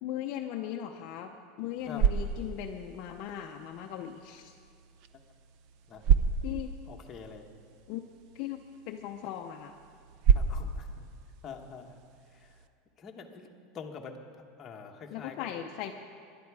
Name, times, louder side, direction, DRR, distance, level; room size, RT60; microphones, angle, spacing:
voice 1, 0.0-4.5 6.4-6.7 7.9-8.0 8.3-9.7 15.1-15.9, left 11 dB, 45° left, 3 dB, 0.6 m, -38 dB
sound 1, 1.6-12.7, right 7 dB, 45° right, 0.6 m, -32 dB
voice 2, 6.9-7.5 10.3-11.1 11.4-12.0 12.3-12.5 13.0-13.5 13.7-14.2 14.6-15.5, left 6 dB, 20° left, 2 dB, 1.1 m, -45 dB
20.5 x 11.5 x 4.8 m, 2.2 s
supercardioid pair, 170°, 0 cm